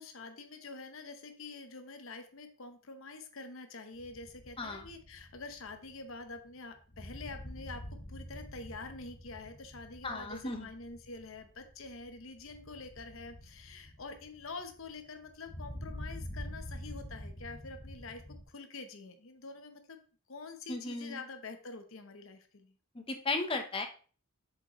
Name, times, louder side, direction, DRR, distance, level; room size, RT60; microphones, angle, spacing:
voice 1, 0.0-7.8 8.1-20.0 20.3-22.7, left 3 dB, 70° left, 7 dB, 0.9 m, -46 dB
sound 1, 3.9-18.4, equal, 45° left, 1.2 m, -47 dB
voice 2, 10.0-10.7 20.7-21.2 22.9-23.9, left 3 dB, 25° left, 5 dB, 0.7 m, -35 dB
6.9 x 5.3 x 3.0 m, 0.39 s
head